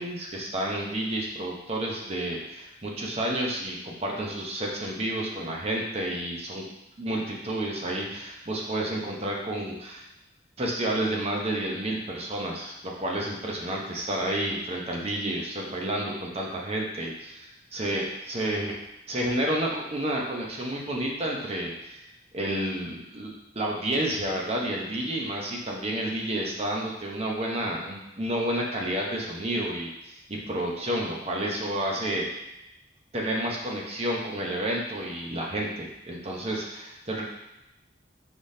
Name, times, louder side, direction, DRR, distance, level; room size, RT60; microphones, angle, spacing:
voice 1, 0.0-6.7 7.0-10.0 10.6-18.7 19.1-22.0 22.3-32.3 33.1-37.2, right 1 dB, 35° right, -1 dB, 0.8 m, -30 dB
4.9 x 3.8 x 2.7 m, 0.89 s
head